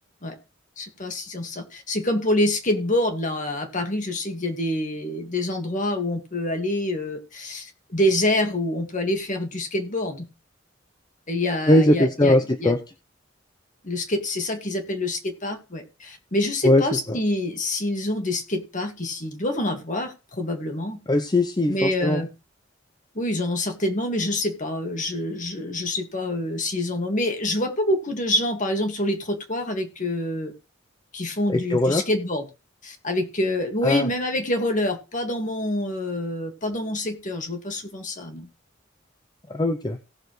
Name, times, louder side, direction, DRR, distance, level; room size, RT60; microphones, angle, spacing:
voice 1, 0.8-10.3 11.3-12.7 13.8-21.0 21.7-22.3 23.2-30.5 31.1-32.5 32.8-38.5, left 1 dB, 40° left, 5 dB, 1.9 m, -26 dB
voice 2, 11.7-12.8 16.6-17.2 21.1-22.2 31.5-32.0 33.8-34.1 39.5-40.0, left 1 dB, 20° left, 7 dB, 0.7 m, -20 dB
17.5 x 6.9 x 3.2 m, 0.29 s
head